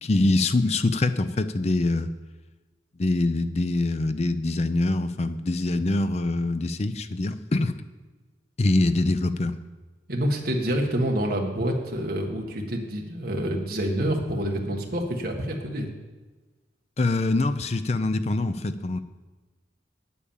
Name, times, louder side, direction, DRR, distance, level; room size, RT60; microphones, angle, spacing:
voice 1, 0.0-2.1 3.0-7.7 8.6-9.6 17.0-19.0, left 2 dB, 35° left, 11 dB, 0.5 m, -24 dB
voice 2, 10.1-15.9, equal, 55° right, 1 dB, 1.5 m, -27 dB
8.7 x 8.6 x 7.2 m, 1.2 s
head